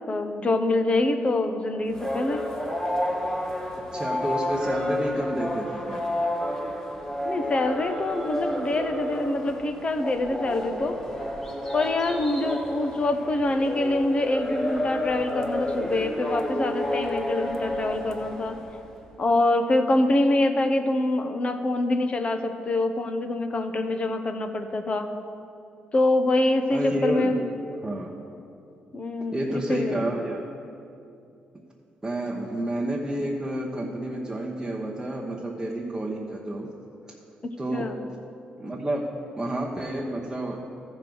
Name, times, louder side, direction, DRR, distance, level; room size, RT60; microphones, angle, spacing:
voice 1, 0.1-2.4 7.2-10.9 11.7-18.6 19.2-25.1 25.9-27.4 28.9-30.0 37.7-38.0, left 2 dB, 35° left, 7 dB, 0.9 m, -25 dB
sound 1, 1.9-18.9, left 1 dB, 20° left, 1.2 m, -30 dB
voice 2, 3.9-6.1 26.7-27.4 27.8-28.1 29.3-30.4 32.0-36.7 37.6-37.9 38.6-40.6, right 1 dB, 15° right, -3 dB, 1.0 m, -30 dB
13.5 x 5.2 x 6.2 m, 2.6 s
cardioid pair, 80°, 3 cm